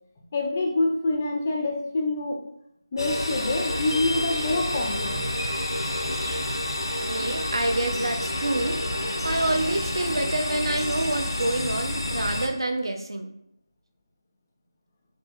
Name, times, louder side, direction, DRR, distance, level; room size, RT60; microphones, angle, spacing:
voice 1, 0.3-2.4 2.9-5.3, left 2 dB, 20° left, 0 dB, 0.3 m, -26 dB
sound 1, 3.0-12.5, left 1 dB, 80° left, 0.5 m, -29 dB
Fowl / Bird, 3.5-11.4, right 1 dB, 25° right, 0.6 m, -43 dB
voice 2, 7.1-8.8 9.2-13.4, right 2 dB, 75° right, 5 dB, 0.4 m, -27 dB
2.6 x 2.6 x 2.3 m, 0.75 s
figure-of-eight pair, 170°, 2 cm